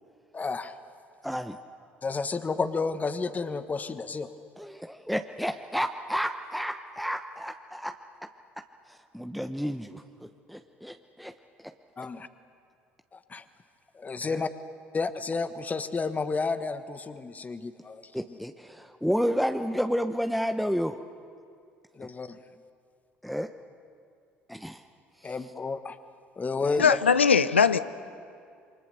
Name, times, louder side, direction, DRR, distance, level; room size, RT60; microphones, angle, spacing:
voice 1, 0.3-0.7 2.0-4.3 12.0-12.3 13.1-13.4 13.9-14.5 14.9-18.1 21.9-22.4 25.2-26.0 26.4-27.0, left 4 dB, 25° left, 11 dB, 1.3 m, -31 dB
voice 2, 1.2-1.6 4.6-8.3 8.8-11.7 14.2-14.5 18.1-21.0 22.0-22.1 23.2-23.5 24.5-24.9 25.1-25.5 26.6-26.8, equal, ahead, 6 dB, 1.0 m, -31 dB
voice 3, 26.8-27.8, left 6 dB, 90° left, 15 dB, 0.6 m, -20 dB
28.0 x 24.0 x 6.7 m, 2.3 s
hypercardioid pair, 60°, 6 cm